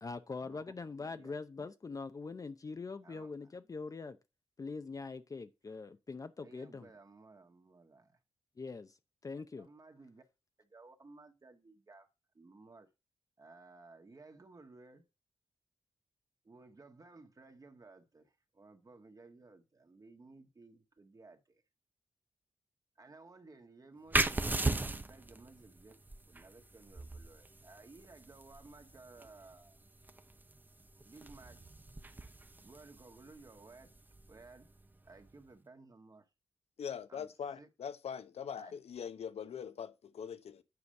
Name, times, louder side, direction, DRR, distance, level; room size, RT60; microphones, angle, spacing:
voice 1, 0.0-4.2 4.6-6.9 8.6-9.0 9.2-9.7, left 4 dB, 35° left, 0.6 m, -43 dB
voice 2, 6.4-8.2 9.6-10.2 10.6-12.1 12.4-12.9 13.4-15.1 16.4-21.6 23.0-24.5 24.8-26.0 26.3-29.8 31.0-31.6 32.6-34.0 34.3-34.7 35.0-36.3 37.1-37.3 37.6-37.7 38.6-38.7, right 3 dB, 35° right, 1.6 m, -57 dB
sound 1, 24.1-35.4, right 2 dB, 15° right, 0.7 m, -39 dB
voice 3, 36.8-40.6, left 7 dB, 80° left, 1.0 m, -42 dB
9.7 x 5.0 x 6.5 m
wide cardioid pair, 110°, 10 cm